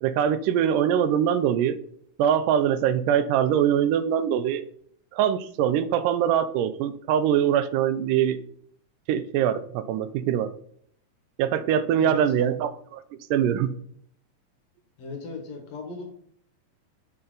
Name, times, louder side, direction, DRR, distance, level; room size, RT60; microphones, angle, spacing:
voice 1, 0.0-1.8 2.2-4.6 5.1-8.4 9.1-10.5 11.4-12.7 13.3-13.7, right 9 dB, 85° right, 11 dB, 2.1 m, -23 dB
voice 2, 12.0-12.5 15.0-16.1, left 3 dB, 60° left, 2 dB, 2.0 m, -37 dB
6.9 x 4.2 x 3.8 m, 0.64 s
omnidirectional pair, 3.7 m